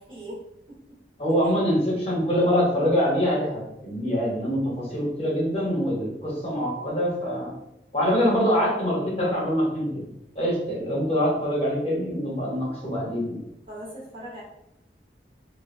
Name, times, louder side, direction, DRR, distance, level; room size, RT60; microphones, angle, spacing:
voice 1, 0.0-1.0 1.4-1.5 13.7-14.4, equal, 30° right, -5 dB, 0.6 m, -40 dB
voice 2, 1.2-7.5 7.9-10.1 10.3-13.4, equal, 35° left, -5 dB, 0.7 m, -24 dB
2.7 x 2.0 x 2.4 m, 0.86 s
head